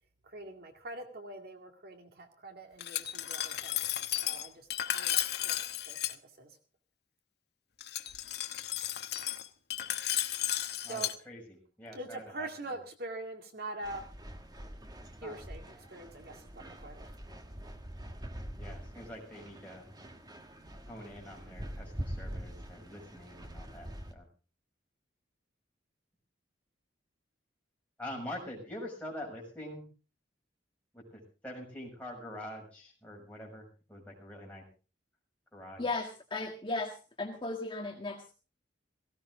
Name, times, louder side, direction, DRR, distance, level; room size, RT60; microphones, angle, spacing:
voice 1, 0.2-4.7 4.9-6.5 10.9-11.1 11.9-14.1 15.0-15.6 15.9-17.1, right 2 dB, 55° right, 5 dB, 2.1 m, -44 dB
Glass, 2.8-6.1 7.8-11.1, left 12 dB, 60° left, 1.1 m, -34 dB
voice 2, 10.8-12.5 15.2-15.3 18.6-19.9 20.9-24.3 28.0-29.9 30.9-34.6 35.5-35.9, left 1 dB, 10° left, -2 dB, 6.7 m, -45 dB
sound 1, 13.8-24.1, equal, 20° right, 1.5 m, -44 dB
voice 3, 35.8-38.3, left 2 dB, 25° left, 1 dB, 1.7 m, -36 dB
17.5 x 16.5 x 3.8 m, 0.35 s
head